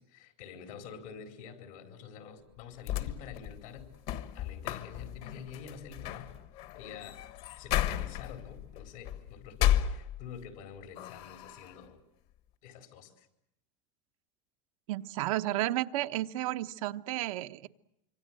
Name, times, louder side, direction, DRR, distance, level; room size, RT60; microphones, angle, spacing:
voice 1, 0.0-3.9 4.3-6.4 6.7-7.2 7.6-12.0 12.6-13.3, left 7 dB, 85° left, 4 dB, 4.6 m, -47 dB
sound 1, 2.6-10.6 11.0-11.8, left 12 dB, 65° left, 1.4 m, -34 dB
voice 2, 14.9-17.7, right 15 dB, 90° right, 9 dB, 0.9 m, -32 dB
26.0 x 24.5 x 7.6 m, 0.82 s
supercardioid pair, 140°, 17 cm